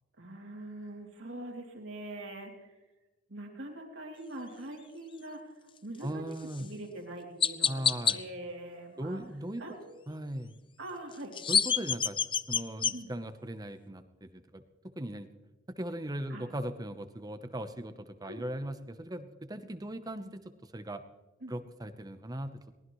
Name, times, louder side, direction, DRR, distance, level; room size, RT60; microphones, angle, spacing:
voice 1, 0.2-2.7 3.3-6.2 6.6-7.8 8.1-9.2 9.6-10.0 10.8-11.3 12.9-13.1 16.3-16.5 18.2-18.5 21.4-21.5, right 1 dB, 70° right, 0 dB, 3.0 m, -43 dB
voice 2, 6.0-6.7 7.7-8.2 9.0-9.6 10.1-10.6 11.5-14.6 15.0-15.3 15.7-21.0 21.5-22.6, right 1 dB, 20° right, 9 dB, 0.9 m, -39 dB
Chirp tweet, 6.5-6.7 7.4-8.2 11.1-12.9, left 7 dB, 25° left, 0.6 m, -27 dB
23.0 x 19.0 x 3.1 m, 1.1 s
head